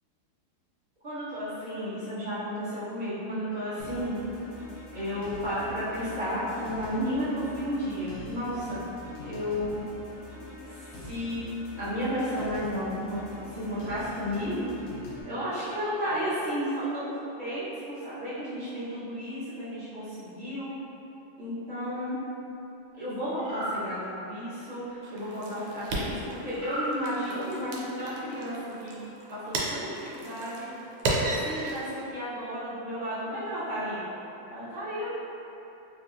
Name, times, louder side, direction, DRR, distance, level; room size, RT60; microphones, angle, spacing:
voice 1, 1.0-4.1 4.9-8.8 9.2-9.8 10.6-11.4 11.8-13.2 13.5-14.7 15.3-20.7 21.4-22.2 22.9-28.5 28.8-29.0 29.3-30.7 31.4-34.0 34.5-35.1, equal, 50° right, -14 dB, 0.8 m, -33 dB
sound 1, 3.8-15.2, left 1 dB, 80° left, 1.6 m, -43 dB
sound 2, 23.4-23.8 26.5-26.9, right 1 dB, 65° right, 0.4 m, -34 dB
sound 3, 25.0-32.0, right 2 dB, 85° right, 1.5 m, -34 dB
4.0 x 2.6 x 2.4 m, 2.9 s
omnidirectional pair, 2.4 m